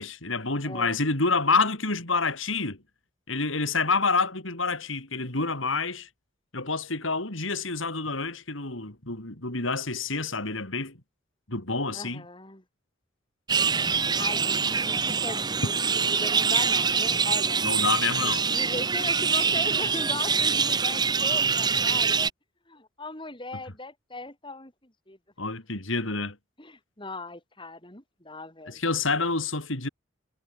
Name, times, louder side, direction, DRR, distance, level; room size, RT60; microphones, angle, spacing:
voice 1, 0.0-2.8 3.3-6.1 6.5-11.0 11.5-12.2 17.6-18.4 25.4-26.4 28.7-29.9, left 4 dB, 80° left, 4.8 m, -28 dB
voice 2, 0.6-1.0 11.9-12.6 14.2-17.6 18.2-22.2 22.7-25.2 26.6-28.8, left 2 dB, 25° left, 6.3 m, -39 dB
sound 1, 13.5-22.3, right 5 dB, 20° right, 1.0 m, -24 dB
head